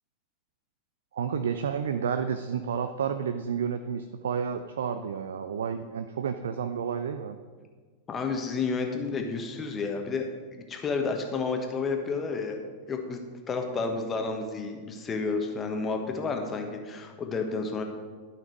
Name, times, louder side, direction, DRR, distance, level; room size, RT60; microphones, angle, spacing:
voice 1, 1.1-7.4, right 7 dB, 65° right, 9 dB, 0.4 m, -30 dB
voice 2, 8.1-12.6 12.9-13.2 13.5-17.8, left 4 dB, 25° left, 4 dB, 1.2 m, -31 dB
11.5 x 5.9 x 4.6 m, 1.5 s
figure-of-eight pair, 90°, 0 cm